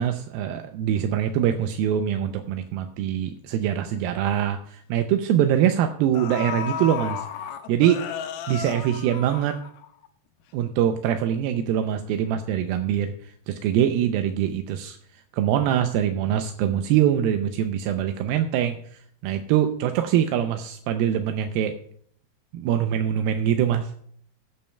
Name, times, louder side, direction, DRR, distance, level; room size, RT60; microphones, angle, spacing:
voice 1, 0.0-7.3 7.7-8.0 8.5-9.6 10.5-13.1 13.5-15.0 15.3-18.8 19.2-21.7 22.5-23.9, right 10 dB, 80° right, 6 dB, 2.3 m, -23 dB
sound 1, 5.6-5.7 6.1-10.1 10.4-10.5, left 8 dB, 80° left, 2.6 m, -33 dB
22.5 x 8.5 x 2.2 m, 0.62 s
omnidirectional pair, 4.6 m